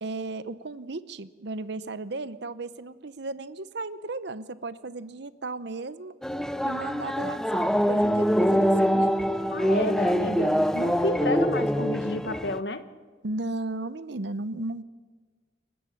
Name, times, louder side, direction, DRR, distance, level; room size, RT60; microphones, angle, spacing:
voice 1, 0.0-6.1 6.6-9.1 13.2-14.8, right 2 dB, 60° right, 15 dB, 0.8 m, -35 dB
sound 1, 6.2-12.6, equal, 5° left, 0.6 m, -24 dB
voice 2, 9.5-12.8, left 2 dB, 60° left, 10 dB, 1.3 m, -31 dB
28.5 x 15.0 x 7.3 m, 1.5 s
head